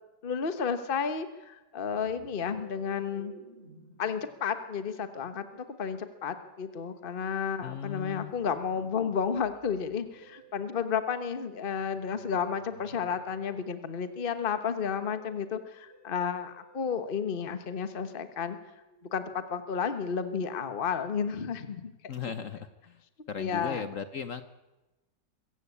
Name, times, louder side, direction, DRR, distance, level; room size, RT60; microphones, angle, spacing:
voice 1, 0.2-3.3 4.0-18.6 19.1-22.1 23.4-23.8, left 6 dB, 35° left, 10 dB, 1.3 m, -32 dB
Musical instrument, 1.9-19.5, right 3 dB, 35° right, 8.1 m, -57 dB
voice 2, 7.6-8.3 22.1-23.0 23.3-24.4, left 7 dB, 55° left, 11 dB, 1.2 m, -37 dB
24.0 x 15.5 x 8.5 m, 1.1 s
omnidirectional pair, 1.8 m